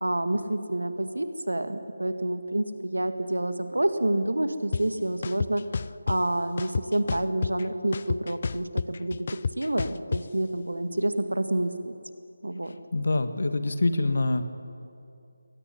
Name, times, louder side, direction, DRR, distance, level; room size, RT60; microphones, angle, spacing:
voice 1, 0.0-5.6 6.1-11.9 12.4-12.8, right 1 dB, 75° right, 9 dB, 2.0 m, -28 dB
sound 1, 4.7-4.8 5.2-6.2 6.6-7.6 7.9-10.2, left 5 dB, 40° left, 0.5 m, -30 dB
voice 2, 12.9-14.4, left 2 dB, 55° left, 10 dB, 1.7 m, -25 dB
22.0 x 18.0 x 9.8 m, 2.5 s
figure-of-eight pair, 155°, 0 cm